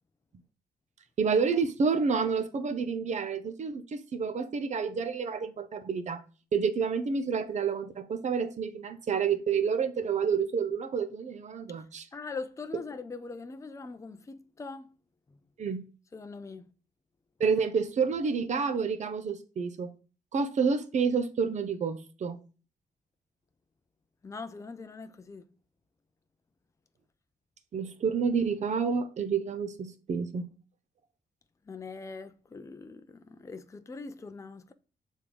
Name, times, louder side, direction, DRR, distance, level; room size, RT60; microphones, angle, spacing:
voice 1, 1.2-6.2 6.5-12.1 15.6-15.8 17.4-19.9 20.3-22.4 27.7-30.5, right 5 dB, 50° right, 0.8 m, -29 dB
voice 2, 12.1-14.9 16.1-16.7 24.2-25.5 31.7-34.7, left 4 dB, 20° left, 0.5 m, -42 dB
6.7 x 3.7 x 4.8 m
cardioid pair, 105°, 16 cm